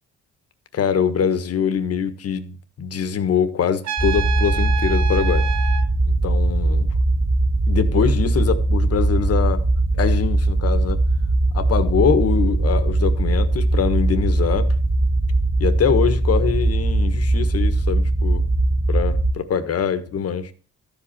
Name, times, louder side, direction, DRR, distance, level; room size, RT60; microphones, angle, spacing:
voice 1, 0.7-5.5 6.0-6.9 7.7-9.6 9.9-11.0 11.5-14.7 15.6-18.4 18.9-20.5, left 7 dB, 50° left, 1.5 m, -23 dB
Trumpet, 3.8-5.9, right 7 dB, 65° right, 1.1 m, -28 dB
sound 1, 4.0-19.3, right 2 dB, 5° right, 1.1 m, -20 dB
13.5 x 5.3 x 7.2 m
cardioid pair, 90°, 30 cm